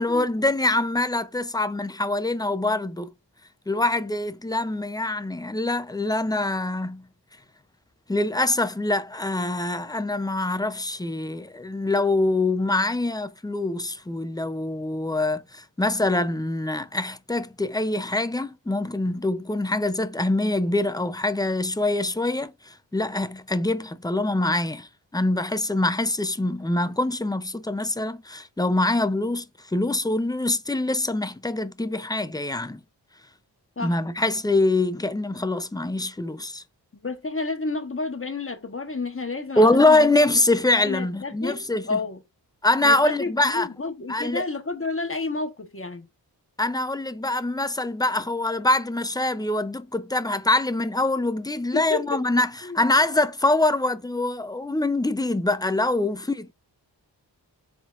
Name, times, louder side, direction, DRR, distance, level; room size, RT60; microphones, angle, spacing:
voice 1, 0.0-3.1 3.7-7.0 8.1-29.4 29.7-32.8 33.8-36.6 39.6-42.0 42.6-43.7 44.1-44.4 46.6-56.5, left 2 dB, 10° left, 0.5 m, -24 dB
voice 2, 37.0-40.1 40.8-42.2 42.8-46.1 51.7-52.0 52.6-52.8, left 3 dB, 30° left, 1.2 m, -30 dB
4.6 x 3.8 x 2.5 m
cardioid pair, 40°, 44 cm